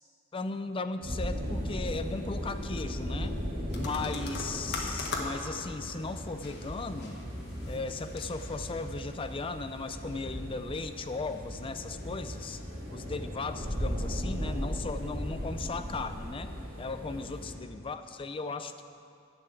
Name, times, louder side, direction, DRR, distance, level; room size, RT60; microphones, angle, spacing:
voice 1, 0.3-3.4 3.7-7.2 7.7-12.6 12.9-16.5 16.8-18.8, left 3 dB, 25° left, 9 dB, 0.4 m, -37 dB
sound 1, 1.0-17.5, equal, 40° right, 2.7 m, -37 dB
sound 2, 3.7-9.6, left 3 dB, 50° left, 1.5 m, -41 dB
11.5 x 6.8 x 8.9 m, 2.4 s
head